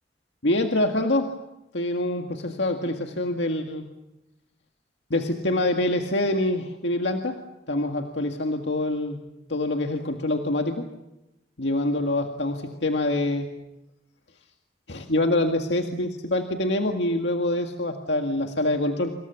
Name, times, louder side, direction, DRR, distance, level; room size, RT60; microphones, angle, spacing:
voice 1, 0.4-1.4 1.7-3.9 5.1-7.4 7.7-9.2 9.5-10.9 11.6-13.5 14.9-19.1, left 1 dB, 80° left, 4 dB, 1.9 m, -25 dB
27.0 x 27.0 x 7.1 m, 0.93 s
head